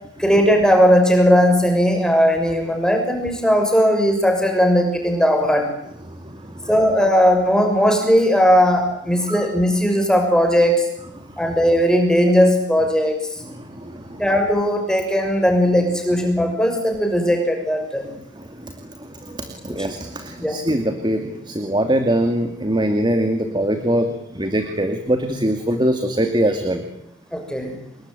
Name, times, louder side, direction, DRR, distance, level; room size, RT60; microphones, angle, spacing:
voice 1, 0.2-5.7 6.7-10.9 11.4-13.2 14.2-18.1 19.7-19.8 20.4-20.6 27.3-27.8, equal, 5° left, 3 dB, 6.3 m, -17 dB
voice 2, 6.1-6.7 9.3-9.5 11.2-11.4 13.5-14.2 18.3-26.8, right 1 dB, 25° right, 6 dB, 2.5 m, -23 dB
29.5 x 20.5 x 9.2 m, 0.73 s
head